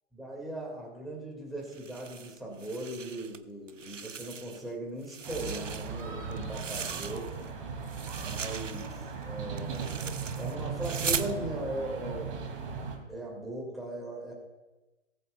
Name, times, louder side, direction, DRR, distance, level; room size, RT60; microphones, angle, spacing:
voice 1, 0.1-7.3 8.1-9.0 9.2-12.3 13.1-14.3, right 1 dB, ahead, -3 dB, 1.9 m, -38 dB
sound 1, 1.7-3.4 3.7-4.7 5.0-7.5 7.8-11.3, right 6 dB, 80° right, 0.8 m, -39 dB
sound 2, 5.2-13.0, right 5 dB, 45° right, 2.4 m, -38 dB
19.0 x 7.8 x 2.2 m, 1.1 s
figure-of-eight pair, 135°, 38 cm